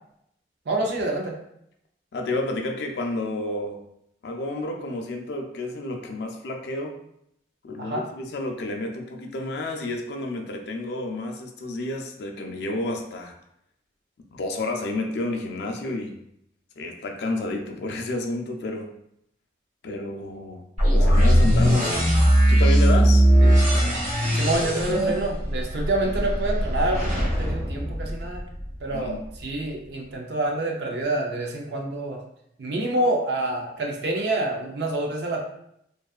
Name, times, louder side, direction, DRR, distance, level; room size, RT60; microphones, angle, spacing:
voice 1, 0.7-1.4 7.8-8.1 23.4-23.5 24.3-28.4 28.8-32.2 32.6-35.4, right 2 dB, 60° right, 1 dB, 0.5 m, -27 dB
voice 2, 2.1-3.8 4.2-7.0 7.6-13.3 14.3-16.2 16.8-18.9 19.8-20.6 20.9-21.9 22.5-23.3 28.9-29.2, left 2 dB, 60° left, 3 dB, 0.4 m, -30 dB
sound 1, 20.8-28.7, equal, 35° right, 0.9 m, -19 dB
2.5 x 2.3 x 2.3 m, 0.76 s
head